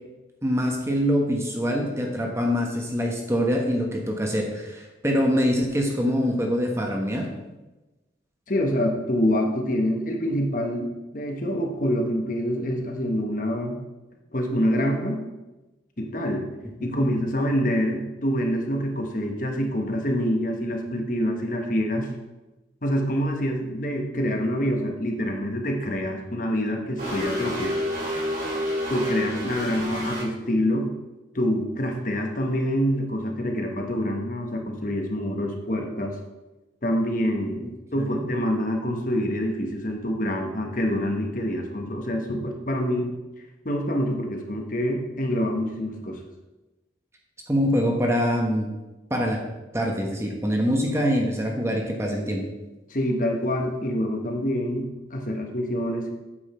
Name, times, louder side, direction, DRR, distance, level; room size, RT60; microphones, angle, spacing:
voice 1, 0.4-7.3 16.8-17.0 38.0-38.2 47.5-48.7 49.1-49.4 49.7-52.4, equal, 15° right, 1 dB, 1.0 m, -24 dB
voice 2, 8.5-13.8 14.3-15.3 16.0-16.4 16.8-22.1 22.8-27.7 28.9-30.9 31.3-36.2 36.8-43.1 43.6-46.2 52.9-56.1, equal, 45° left, 2 dB, 1.2 m, -26 dB
sound 1, 27.0-30.2, equal, 45° right, 2.8 m, -29 dB
8.6 x 7.3 x 4.4 m, 1.1 s
head